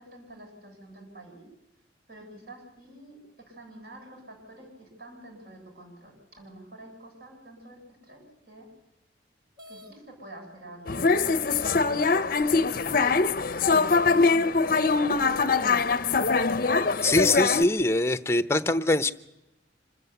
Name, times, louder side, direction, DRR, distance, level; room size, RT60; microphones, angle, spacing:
voice 1, 0.0-1.4 2.1-8.7 9.7-12.0 13.5-16.3, right 1 dB, 55° right, 1 dB, 7.8 m, -48 dB
sound 1, 9.6-10.0 10.9-11.0 11.7-11.8 12.4-13.1, left 1 dB, 25° right, 2.6 m, -50 dB
sound 2, 10.9-17.6, left 4 dB, 50° left, 0.7 m, -23 dB
voice 2, 17.0-19.1, left 2 dB, 15° left, 12 dB, 0.8 m, -23 dB
26.5 x 14.0 x 8.2 m, 0.94 s
head